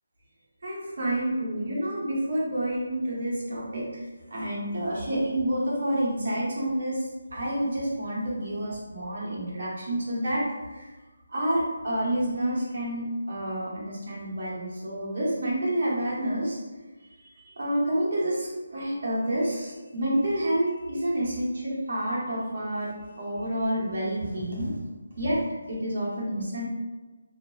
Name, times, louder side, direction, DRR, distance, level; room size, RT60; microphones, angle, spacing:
voice 1, 0.6-4.0 4.3-10.4 10.7-10.9 11.3-16.6 17.2-24.8 25.2-26.6, right 1 dB, 60° right, -5 dB, 0.9 m, -29 dB
2.5 x 2.2 x 2.3 m, 1.2 s
figure-of-eight pair, 170°, 0 cm